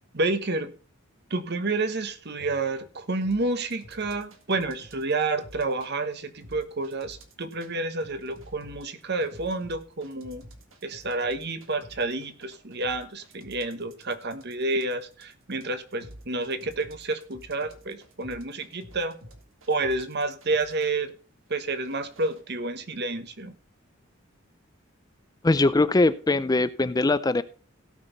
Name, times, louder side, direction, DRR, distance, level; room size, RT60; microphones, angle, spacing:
voice 1, 0.1-0.7 1.3-10.4 10.8-19.2 19.7-21.1 21.5-23.5, right 2 dB, 55° right, 10 dB, 1.3 m, -29 dB
sound 1, 3.2-5.9 6.4-7.7 8.0-21.0 21.6-22.4, right 1 dB, 80° right, 2.0 m, -50 dB
voice 2, 25.4-27.4, left 2 dB, 20° left, 14 dB, 0.5 m, -21 dB
17.0 x 6.2 x 4.0 m, 0.39 s
head